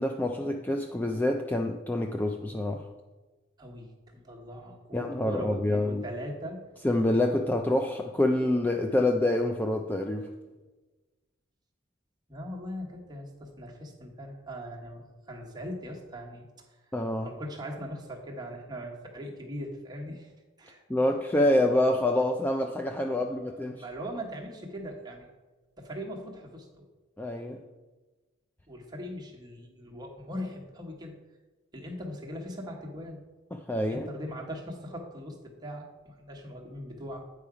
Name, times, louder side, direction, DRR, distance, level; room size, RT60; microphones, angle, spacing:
voice 1, 0.0-2.9 4.9-6.0 6.8-10.3 16.9-17.3 20.9-23.8 27.2-27.6 33.5-34.1, left 1 dB, 10° left, 3 dB, 0.3 m, -27 dB
voice 2, 3.6-6.6 12.3-16.5 16.9-17.0 17.2-20.3 20.6-21.2 23.1-25.3 25.8-26.9 28.7-31.1 31.7-33.2 33.9-37.2, equal, 20° right, 0 dB, 1.1 m, -40 dB
8.6 x 4.8 x 4.8 m, 1.2 s
head